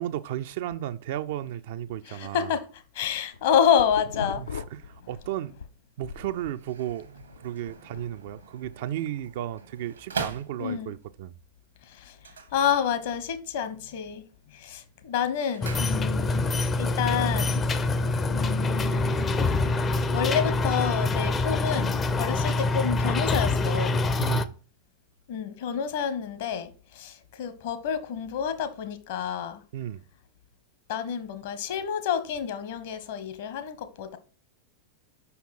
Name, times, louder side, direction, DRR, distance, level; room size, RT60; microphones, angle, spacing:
voice 1, 0.0-2.5 4.4-5.6 6.0-11.3 24.2-24.6 29.7-30.0, right 12 dB, 50° right, 0.4 m, -34 dB
voice 2, 2.1-2.6 2.9-4.4 10.6-10.9 11.9-12.2 12.5-14.2 14.5-16.4 16.8-17.6 18.3-19.3 20.1-24.0 25.3-29.6 30.9-34.2, left 8 dB, 55° left, 1.0 m, -28 dB
sound 1, 3.2-5.7 6.0-8.4, left 5 dB, 70° left, 0.5 m, -39 dB
sound 2, 6.1-11.1 12.1-13.3 13.5-14.0 14.4-16.5 16.7-16.8, right 5 dB, 75° right, 1.2 m, -41 dB
sound 3, 15.6-24.5, left 2 dB, 20° left, 0.5 m, -25 dB
5.7 x 5.5 x 4.2 m
figure-of-eight pair, 90°, 0 cm